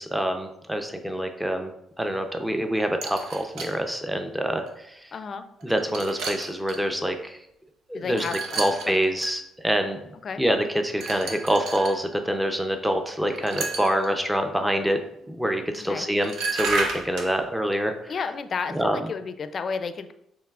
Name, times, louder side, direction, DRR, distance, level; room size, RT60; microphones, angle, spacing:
voice 1, 0.0-1.7 2.0-5.0 5.6-7.4 7.9-10.0 10.4-15.0 15.3-17.9 18.7-19.0, equal, 5° right, 5 dB, 0.5 m, -26 dB
sound 1, 3.0-3.8 4.6-4.7 5.6-6.8 8.1-9.3 11.0-12.0 13.4-14.1 15.8-15.9 16.2-17.3, right 3 dB, 80° right, 0.8 m, -32 dB
voice 2, 5.1-5.4 7.9-9.0 10.2-10.4 15.8-16.1 18.1-20.1, left 5 dB, 50° left, 10 dB, 0.4 m, -32 dB
7.0 x 3.1 x 2.4 m, 0.77 s
cardioid pair, 90°, 0 cm